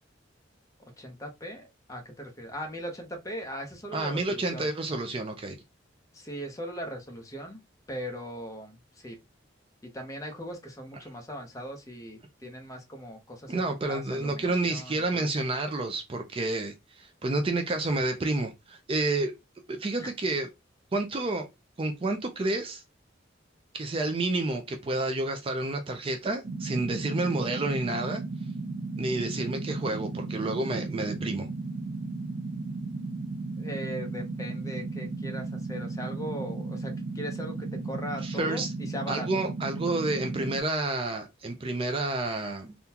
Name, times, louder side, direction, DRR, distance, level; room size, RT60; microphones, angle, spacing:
voice 1, 0.8-4.7 6.1-7.6 7.9-9.2 9.9-15.3 20.0-20.1 33.6-39.3, equal, 15° left, 0.7 m, -39 dB
voice 2, 3.9-5.6 13.5-19.3 19.7-20.5 20.9-21.5 21.8-22.8 23.7-28.2 28.9-31.5 38.2-38.7 39.1-42.8, right 2 dB, 30° right, 0.4 m, -29 dB
sound 1, 26.4-40.6, right 3 dB, 65° right, 0.7 m, -35 dB
3.7 x 2.2 x 2.8 m
head